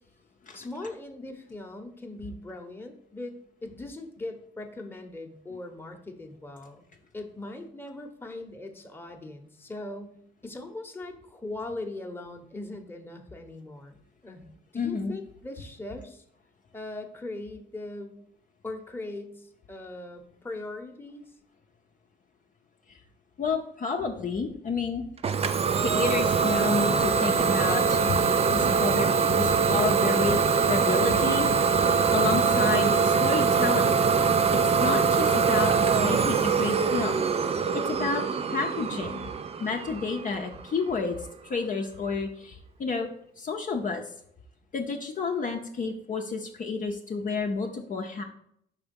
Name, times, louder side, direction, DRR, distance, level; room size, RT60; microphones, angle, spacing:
voice 1, 0.5-6.9 7.1-10.2 10.4-14.0 14.2-16.2 16.7-18.2 18.6-21.2, left 2 dB, 10° left, 3 dB, 0.9 m, -40 dB
voice 2, 14.7-15.2 22.9-23.0 23.4-25.0 25.8-29.1 29.4-30.4 30.7-34.0 34.5-37.2 37.9-38.2 38.5-39.2 39.6-43.1 43.4-44.1 44.7-48.2, left 4 dB, 40° left, 2 dB, 0.7 m, -30 dB
Idling / Domestic sounds home sounds, 25.2-40.8, right 5 dB, 30° right, 0.4 m, -23 dB
5.6 x 3.5 x 5.2 m, 0.71 s
cardioid pair, 90°, 20 cm